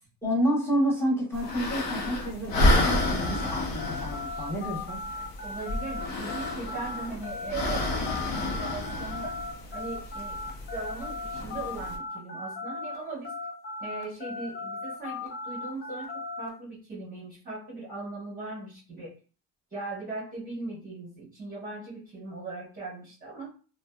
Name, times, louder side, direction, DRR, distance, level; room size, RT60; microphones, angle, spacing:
voice 1, 0.2-5.0, equal, 5° left, -3 dB, 0.9 m, -29 dB
sound 1, 1.3-12.0, left 1 dB, 70° left, 0.8 m, -30 dB
sound 2, 2.8-13.0 13.2-16.5, left 3 dB, 25° left, 0.5 m, -37 dB
voice 2, 5.1-9.3 9.7-10.4 10.7-13.4 13.8-19.1 19.7-23.5, right 3 dB, 20° right, -9 dB, 1.0 m, -39 dB
2.5 x 2.2 x 2.2 m, 0.39 s
cardioid pair, 125°, 37 cm